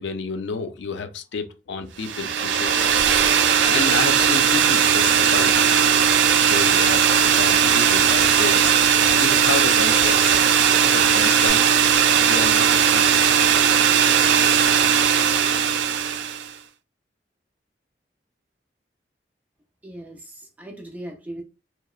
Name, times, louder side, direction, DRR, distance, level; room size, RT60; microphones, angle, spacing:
voice 1, 0.0-3.0 3.7-5.5 6.4-8.6 9.2-10.4 10.8-11.7 12.2-13.4, left 5 dB, 90° left, 0.4 m, -31 dB
sound 1, 2.0-16.5, right 8 dB, 80° right, 0.3 m, -18 dB
sound 2, 2.4-11.5, left 2 dB, 40° left, 1.3 m, -36 dB
voice 2, 19.8-21.4, right 1 dB, 10° right, 0.5 m, -38 dB
2.8 x 2.0 x 2.3 m
head